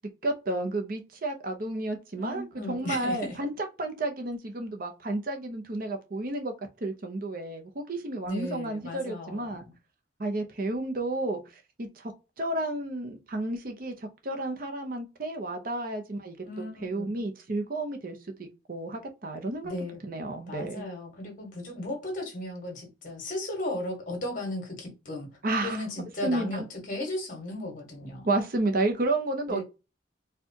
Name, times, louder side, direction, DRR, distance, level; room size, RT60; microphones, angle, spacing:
voice 1, 0.2-6.5 6.8-9.6 10.2-12.1 12.4-19.7 20.0-20.9 25.4-25.8 26.2-26.7 28.3-29.6, right 2 dB, 50° right, 0.7 m, -31 dB
voice 2, 2.2-3.3 8.3-9.7 16.4-17.1 19.6-20.0 20.5-25.3 25.6-28.3 29.5-29.6, left 1 dB, 45° left, 1.6 m, -36 dB
4.4 x 2.3 x 2.8 m
head